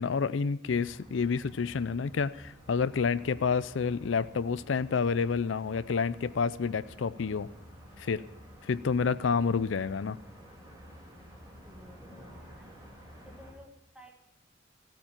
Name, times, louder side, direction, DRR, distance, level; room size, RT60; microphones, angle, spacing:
voice 1, 0.0-7.5 8.0-8.2 8.6-10.2, left 5 dB, 70° left, 16 dB, 0.5 m, -29 dB
sound 1, 0.7-13.5, equal, 20° right, 3.6 m, -51 dB
voice 2, 11.6-12.9 13.2-14.1, equal, 5° right, 0 dB, 1.9 m, -55 dB
15.5 x 9.1 x 7.2 m, 0.85 s
head